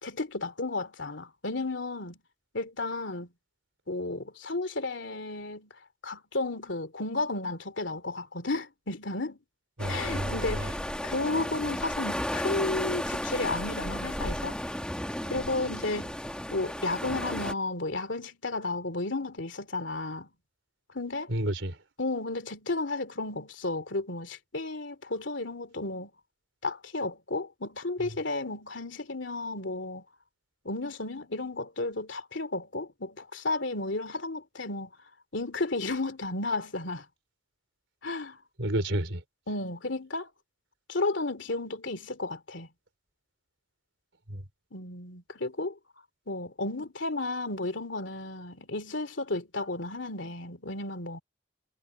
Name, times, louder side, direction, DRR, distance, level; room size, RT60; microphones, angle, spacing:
voice 1, 0.0-2.2 2.5-3.3 3.9-5.7 6.0-9.4 9.9-10.8 11.0-14.6 15.3-16.2 16.5-20.3 20.9-21.3 22.0-26.1 26.6-30.0 30.6-34.9 35.3-37.1 38.0-38.4 39.5-40.3 40.9-42.7 44.7-45.8 46.3-51.2, left 2 dB, 70° left, 2.9 m, -33 dB
sound 1, 9.8-17.5, equal, 5° left, 1.7 m, -33 dB
voice 2, 9.8-10.7 21.3-21.7 38.6-39.2 44.3-44.4, right 1 dB, 75° right, 3.9 m, -31 dB
head